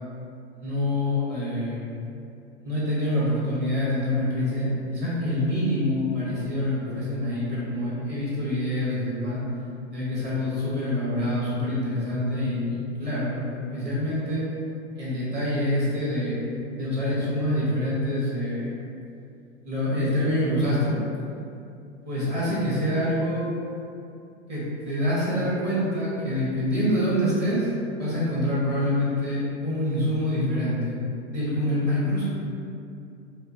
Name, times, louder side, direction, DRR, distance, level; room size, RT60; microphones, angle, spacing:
voice 1, 0.5-1.8 2.6-9.4 9.9-14.4 14.9-16.4 16.7-18.8 19.6-21.0 22.0-23.5 24.5-32.3, left 1 dB, 30° right, -8 dB, 1.3 m, -26 dB
4.5 x 2.5 x 2.7 m, 2.6 s
figure-of-eight pair, 105°, 36 cm